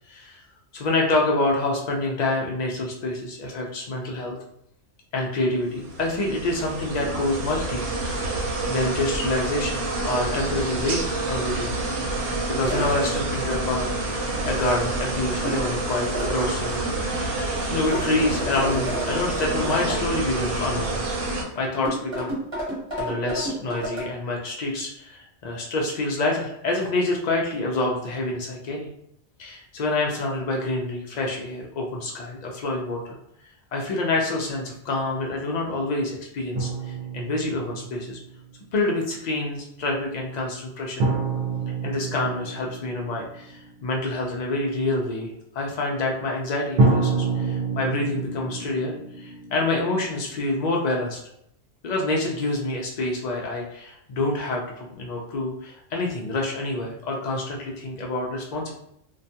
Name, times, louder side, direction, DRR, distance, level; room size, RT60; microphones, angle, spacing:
voice 1, 0.1-0.4 0.7-4.4 5.1-7.8 8.2-8.3 8.7-11.7 12.0-12.2 12.5-13.9 14.4-16.8 17.7-22.3 23.0-28.9 29.4-33.2 33.7-38.2 38.7-41.1 41.8-51.2 51.8-58.7, left 2 dB, 75° left, -1 dB, 0.4 m, -27 dB
sound 1, 5.7-21.4, right 2 dB, 90° right, 0.9 m, -28 dB
sound 2, 12.7-12.9 15.4-15.7 16.1-16.4 17.9-20.0 21.8-24.1, right 1 dB, 25° right, 1.0 m, -31 dB
sound 3, 36.5-38.4 41.0-43.8 46.8-50.6, right 3 dB, 55° right, 0.7 m, -27 dB
2.3 x 2.2 x 2.7 m, 0.74 s
omnidirectional pair, 1.3 m